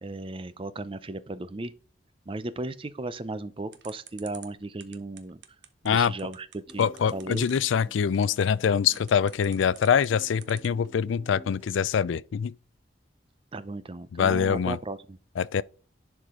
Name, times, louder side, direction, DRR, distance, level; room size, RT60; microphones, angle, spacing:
voice 1, 0.0-1.7 2.3-5.4 5.9-7.5 13.5-15.2, right 2 dB, 30° right, 0.5 m, -36 dB
sound 1, 3.7-10.9, right 10 dB, 65° right, 1.0 m, -48 dB
sound 2, 6.7-11.7, left 1 dB, 10° right, 2.3 m, -50 dB
voice 2, 6.8-12.5 14.1-14.8 15.4-15.6, left 7 dB, 85° left, 0.4 m, -24 dB
11.0 x 4.8 x 3.7 m
head